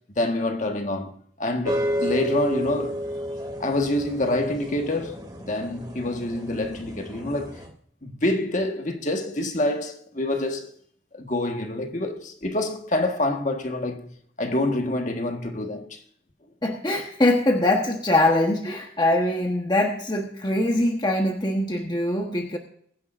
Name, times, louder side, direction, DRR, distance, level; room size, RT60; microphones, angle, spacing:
voice 1, 0.2-1.1 1.4-3.0 3.6-7.6 8.0-10.7 11.1-16.0, left 1 dB, 40° left, 1.5 m, -27 dB
sound 1, 1.6-7.7, equal, 20° right, 2.8 m, -31 dB
voice 2, 16.6-22.6, left 1 dB, 25° left, 1.2 m, -23 dB
22.0 x 10.5 x 2.6 m
head